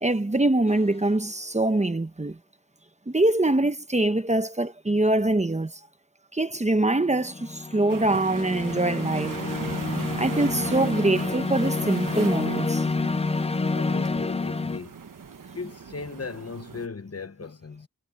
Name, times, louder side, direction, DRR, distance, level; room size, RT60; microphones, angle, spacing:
voice 1, 0.0-2.4 3.1-5.7 6.3-9.4 10.2-12.8, right 2 dB, 20° right, 1.0 m, -24 dB
sound 1, 0.7-1.0 6.9-14.8, left 3 dB, 20° left, 0.4 m, -29 dB
sound 2, 7.9-16.9, right 6 dB, 80° right, 1.3 m, -38 dB
voice 2, 13.6-15.0 15.5-17.9, left 4 dB, 50° left, 1.3 m, -37 dB
wide cardioid pair, 90°, 32 cm